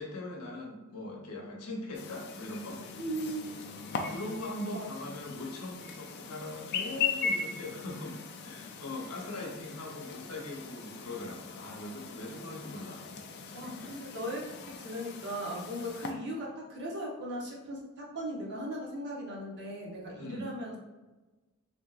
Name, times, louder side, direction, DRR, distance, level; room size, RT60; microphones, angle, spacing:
voice 1, 0.0-2.8 3.7-13.1 13.5-13.9 20.2-20.5, left 2 dB, 80° left, 0 dB, 0.8 m, -41 dB
Chirp tweet, 1.9-16.1, left 5 dB, 50° left, 0.3 m, -39 dB
voice 2, 3.0-3.6 4.7-4.9 13.5-20.8, equal, 50° right, -2 dB, 0.8 m, -38 dB
3.3 x 2.7 x 2.3 m, 1.2 s
head